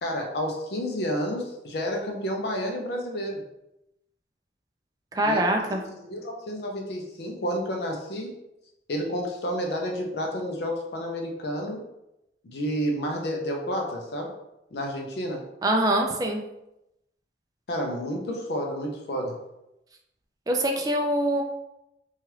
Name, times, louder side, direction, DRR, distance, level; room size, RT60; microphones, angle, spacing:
voice 1, 0.0-3.4 5.2-5.4 5.7-8.3 8.9-11.9 12.4-14.3 14.7-15.5 17.7-19.4, equal, 60° left, 2 dB, 0.5 m, -30 dB
voice 2, 5.1-5.8 15.6-16.4 20.5-21.4, right 1 dB, 20° right, 2 dB, 0.3 m, -24 dB
3.1 x 2.3 x 2.9 m, 0.88 s
head